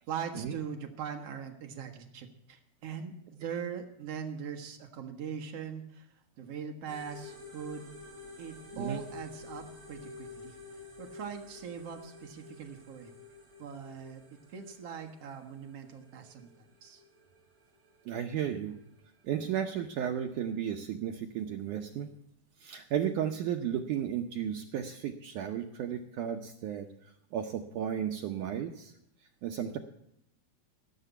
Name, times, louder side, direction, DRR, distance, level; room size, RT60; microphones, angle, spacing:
voice 1, 0.1-7.9 8.4-10.6 11.0-13.1 13.6-14.2 14.5-17.0, right 7 dB, 65° right, 4 dB, 1.5 m, -41 dB
sound 1, 6.9-20.6, left 3 dB, 40° right, 5.2 m, -51 dB
voice 2, 18.1-18.8 19.2-22.1 22.6-28.9 29.4-29.8, right 9 dB, 90° right, 4 dB, 1.7 m, -34 dB
16.0 x 6.7 x 8.2 m, 0.76 s
omnidirectional pair, 4.7 m